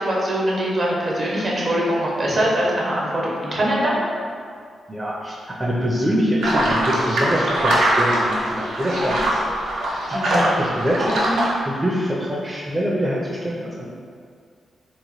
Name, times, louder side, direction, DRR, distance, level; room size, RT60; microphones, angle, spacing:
voice 1, 0.0-4.0 10.1-10.3, equal, 50° right, -5 dB, 0.8 m, -22 dB
voice 2, 4.9-9.4 9.7-13.9, equal, 20° right, -5 dB, 0.5 m, -24 dB
sound 1, 6.4-11.5, right 1 dB, 90° right, 0.5 m, -22 dB
2.9 x 2.1 x 3.0 m, 2.2 s
cardioid pair, 60°, 0 cm